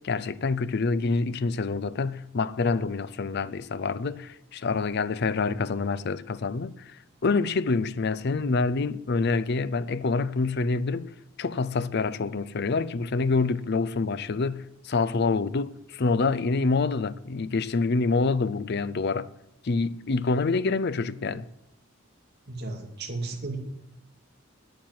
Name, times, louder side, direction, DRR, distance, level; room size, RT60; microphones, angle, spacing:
voice 1, 0.0-7.0 7.2-11.1 11.4-19.3 19.6-21.4, left 4 dB, 55° left, 0.5 m, -26 dB
voice 2, 22.5-23.6, right 3 dB, 55° right, 2.5 m, -34 dB
9.4 x 8.7 x 9.3 m
head